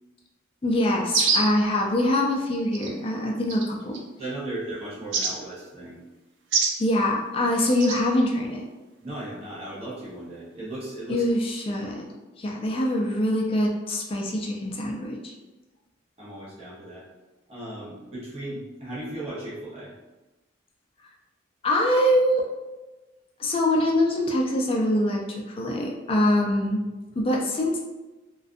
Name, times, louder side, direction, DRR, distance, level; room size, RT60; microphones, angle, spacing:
voice 1, 0.6-4.0 6.8-8.6 11.1-12.1 12.4-15.3 21.6-22.5 23.4-26.8 27.2-27.8, left 1 dB, 30° left, 0 dB, 0.3 m, -24 dB
sound 1, 1.1-1.6 2.7-2.9 3.5-4.0 5.1-5.3 6.5-6.8 7.8-8.0, right 4 dB, 75° right, 0.4 m, -24 dB
voice 2, 4.2-6.0 9.0-11.2 16.2-17.0 17.5-19.9, right 1 dB, 35° right, -8 dB, 0.8 m, -36 dB
2.4 x 2.2 x 2.5 m, 1.1 s
head